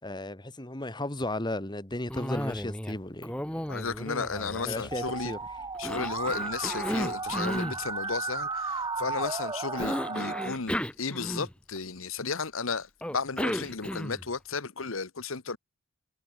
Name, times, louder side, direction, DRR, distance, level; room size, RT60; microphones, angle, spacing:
voice 1, 0.0-3.8 4.7-5.4, left 1 dB, 20° left, 2.0 m, -35 dB
Cough, 2.1-3.0 3.2-5.3 5.8-7.8 9.8-11.8 13.0-14.3, equal, 5° left, 1.4 m, -34 dB
sound 1, 3.5-11.5 12.0-12.1, right 1 dB, 45° right, 3.5 m, -59 dB
voice 2, 3.7-5.3 5.8-15.6, left 4 dB, 75° left, 1.3 m, -34 dB
Musical instrument, 4.9-10.5, right 4 dB, 20° right, 1.1 m, -34 dB
head